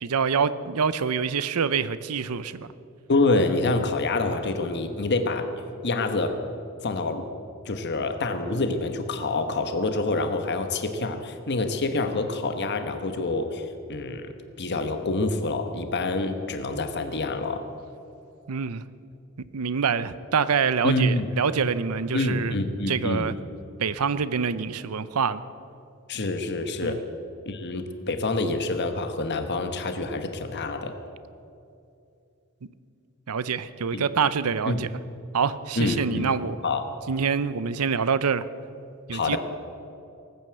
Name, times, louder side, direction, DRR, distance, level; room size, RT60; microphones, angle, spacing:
voice 1, 0.0-2.7 18.5-18.8 19.4-22.6 22.9-23.3 23.8-25.4 26.8-27.0 33.3-34.9 35.3-36.6 37.1-38.4 39.1-39.4, right 6 dB, 85° right, 15 dB, 0.7 m, -26 dB
voice 2, 3.1-5.5 5.8-6.3 6.8-7.3 7.6-13.6 13.9-14.3 14.6-17.6 20.8-21.3 22.1-23.3 26.1-27.0 27.5-31.0 33.9-34.0 34.6-34.8 35.8-36.3 36.6-36.9 39.1-39.4, left 2 dB, 50° left, 7 dB, 1.2 m, -26 dB
19.0 x 9.4 x 7.9 m, 2.6 s
head